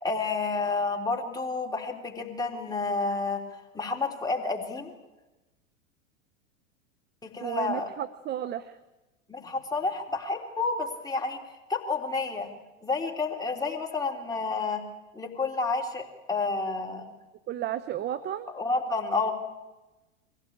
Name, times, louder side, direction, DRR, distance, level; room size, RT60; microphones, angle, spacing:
voice 1, 0.0-3.4 3.7-4.9 7.2-7.9 9.3-11.4 11.7-12.5 12.8-14.8 15.1-17.0 18.6-19.3, left 3 dB, 10° left, 0 dB, 3.4 m, -30 dB
voice 2, 7.4-8.8 17.5-18.5, right 11 dB, 25° right, 13 dB, 0.8 m, -33 dB
23.0 x 16.5 x 8.8 m, 1.1 s
hypercardioid pair, 105°, 37 cm